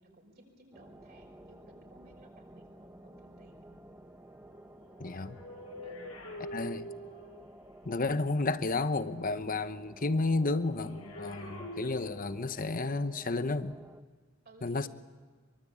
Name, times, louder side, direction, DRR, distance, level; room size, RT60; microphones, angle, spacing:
voice 1, 0.0-3.8 5.8-6.2 14.4-14.9, right 1 dB, 50° right, 5.8 m, -58 dB
sound 1, 0.7-14.0, right 1 dB, 10° right, 1.1 m, -53 dB
sound 2, 4.8-7.5 10.7-12.6 13.5-13.7, equal, 90° left, 6.4 m, -45 dB
voice 2, 5.0-5.4 6.5-6.9 7.8-13.8 14.6-14.9, left 3 dB, 40° left, 1.0 m, -31 dB
24.5 x 24.0 x 8.7 m
head